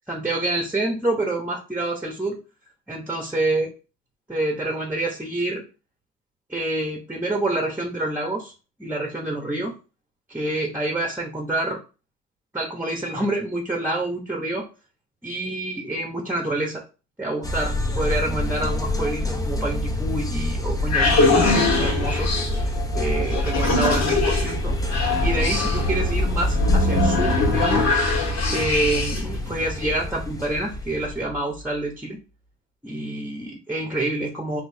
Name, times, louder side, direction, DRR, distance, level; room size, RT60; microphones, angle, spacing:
voice 1, 0.1-2.4 2.9-3.7 4.3-5.6 6.5-8.5 8.8-9.7 10.3-11.8 12.5-14.7 15.2-16.8 17.2-22.3 22.9-24.7 25.2-27.9 28.5-32.2 32.8-34.6, right 2 dB, 5° right, 0 dB, 1.1 m, -27 dB
sound 1, 17.4-31.2, left 1 dB, 10° left, 0.8 m, -27 dB
sound 2, 20.5-29.4, left 2 dB, 65° left, 1.8 m, -23 dB
6.1 x 2.6 x 2.8 m, 0.32 s
cardioid pair, 90°, 30 cm